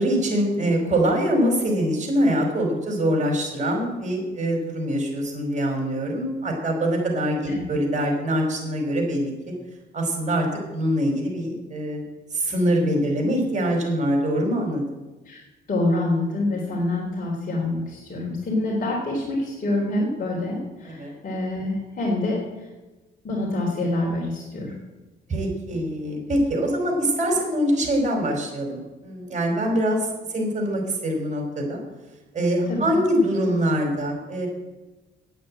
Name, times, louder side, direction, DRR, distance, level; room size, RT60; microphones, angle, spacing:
voice 1, 0.0-9.3 9.9-10.5 10.7-12.0 12.3-14.8 20.8-21.1 25.3-30.1 30.3-31.8 32.3-34.5, equal, 35° right, 1 dB, 5.0 m, -24 dB
voice 2, 15.7-22.4 23.2-24.7 32.7-33.0, left 2 dB, 45° left, -3 dB, 3.5 m, -26 dB
9.4 x 9.2 x 8.8 m, 1.1 s
cardioid pair, 90°, 20 cm